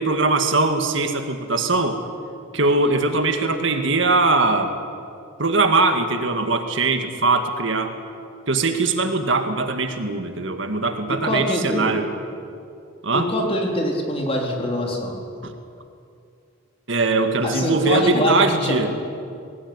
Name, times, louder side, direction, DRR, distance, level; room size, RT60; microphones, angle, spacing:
voice 1, 0.0-2.0 2.5-4.7 5.4-7.9 8.5-12.1 13.0-13.3 15.4-15.5 16.9-18.9, right 3 dB, 65° right, 6 dB, 2.0 m, -21 dB
voice 2, 11.1-12.0 13.1-15.1 17.4-18.8, equal, 30° left, 0 dB, 4.1 m, -24 dB
22.0 x 18.5 x 9.8 m, 2.4 s
head